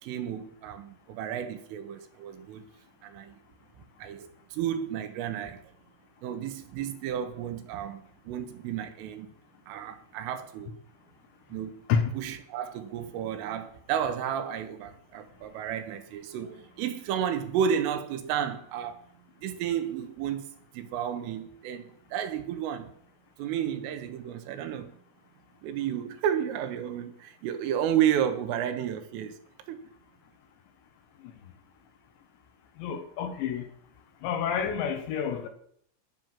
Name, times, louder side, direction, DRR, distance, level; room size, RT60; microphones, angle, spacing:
voice 1, 0.0-2.7 3.0-3.4 4.0-5.6 6.2-9.3 9.7-10.8 11.5-11.8 12.1-19.0 19.4-22.9 23.4-24.9 25.6-29.4 29.7-29.9, right 9 dB, 80° right, 3.7 m, -32 dB
voice 2, 32.8-33.7 34.2-35.5, left 7 dB, 70° left, 3.2 m, -28 dB
10.5 x 10.5 x 7.5 m
omnidirectional pair, 5.8 m